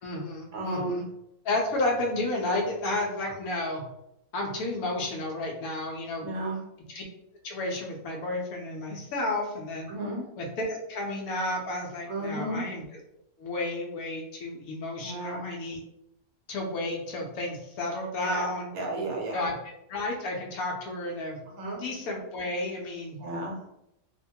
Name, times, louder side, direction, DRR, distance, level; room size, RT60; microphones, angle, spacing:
voice 1, 0.0-1.0 1.4-3.8 4.3-6.4 6.9-7.0 7.4-9.9 10.4-12.8 13.4-15.8 16.5-18.7 19.3-19.6 19.9-21.4 21.8-23.2, left 2 dB, 75° left, 0 dB, 1.1 m, -32 dB
voice 2, 0.5-1.0 6.2-6.6 9.9-10.2 12.1-12.6 15.0-15.4 18.2-19.4 21.6-21.8 23.2-23.5, right 1 dB, 75° right, -1 dB, 1.2 m, -33 dB
3.0 x 2.1 x 2.7 m, 0.81 s
omnidirectional pair, 1.6 m